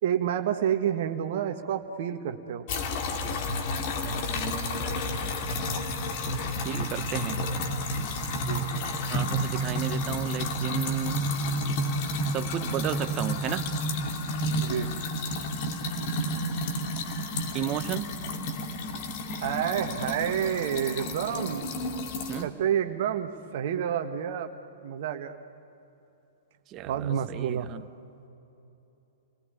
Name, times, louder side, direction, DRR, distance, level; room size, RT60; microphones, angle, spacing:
voice 1, 0.0-2.6 8.4-8.7 14.4-14.9 19.4-21.7 22.4-24.5 24.8-25.4 26.9-27.7, right 9 dB, 50° right, 6 dB, 1.5 m, -29 dB
sound 1, 2.7-22.4, left 1 dB, 45° left, 2.4 m, -31 dB
voice 2, 4.3-5.0 6.6-7.5 9.1-11.3 12.3-13.7 16.2-16.5 17.5-18.1 22.3-22.5 26.7-27.8, right 12 dB, 30° right, 12 dB, 1.0 m, -34 dB
30.0 x 19.5 x 9.7 m, 2.9 s
figure-of-eight pair, 105°, 0 cm